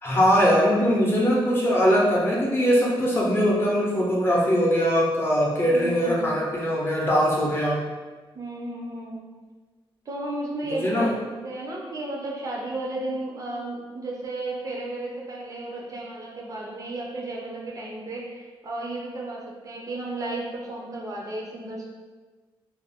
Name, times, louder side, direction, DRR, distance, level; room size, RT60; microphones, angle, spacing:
voice 1, 0.0-7.8 10.6-11.1, equal, 25° left, -4 dB, 0.6 m, -21 dB
voice 2, 5.7-6.3 8.3-9.2 10.1-21.8, right 2 dB, 35° right, -2 dB, 0.4 m, -33 dB
2.3 x 2.1 x 3.4 m, 1.3 s
wide cardioid pair, 160°, 9 cm